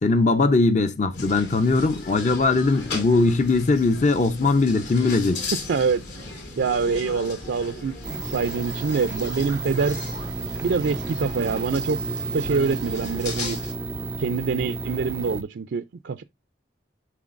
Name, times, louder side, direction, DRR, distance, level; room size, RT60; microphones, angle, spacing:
voice 1, 0.0-5.4, left 3 dB, 40° left, 0.5 m, -20 dB
sound 1, 1.1-13.7, left 3 dB, 70° left, 3.0 m, -37 dB
voice 2, 5.7-6.0 6.6-10.0 10.6-12.0 12.3-13.6 14.2-16.2, right 5 dB, 70° right, 0.4 m, -25 dB
sound 2, 8.0-15.4, right 3 dB, 10° right, 0.4 m, -32 dB
11.0 x 3.8 x 2.5 m
head